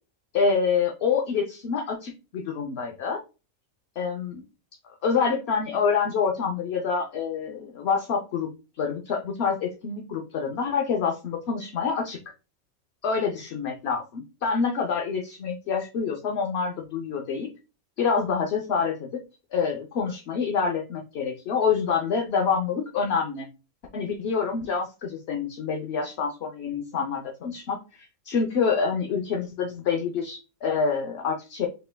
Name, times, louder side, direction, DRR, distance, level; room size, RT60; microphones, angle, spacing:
voice 1, 0.3-3.2 4.0-4.4 5.0-8.5 8.8-12.2 13.0-17.5 18.0-19.1 19.5-23.5 23.9-31.7, left 5 dB, 60° left, 1 dB, 0.8 m, -27 dB
6.5 x 3.3 x 2.2 m, 0.31 s
omnidirectional pair, 1.4 m